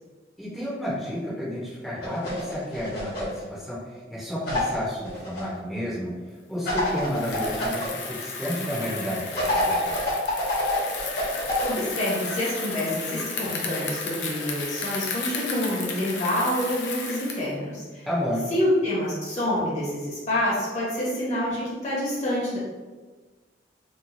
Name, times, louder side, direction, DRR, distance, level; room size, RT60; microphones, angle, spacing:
voice 1, 0.4-6.1 6.5-10.1 18.1-18.5, equal, ahead, -10 dB, 0.7 m, -31 dB
sound 1, 2.0-3.4 4.5-5.4 6.6-7.9 9.3-11.7, left 1 dB, 65° left, 1.3 m, -27 dB
Bicycle, 7.0-17.5, left 4 dB, 80° left, 0.5 m, -34 dB
voice 2, 11.6-18.1 18.5-22.6, left 1 dB, 40° left, -7 dB, 0.9 m, -27 dB
2.9 x 2.2 x 2.6 m, 1.3 s
head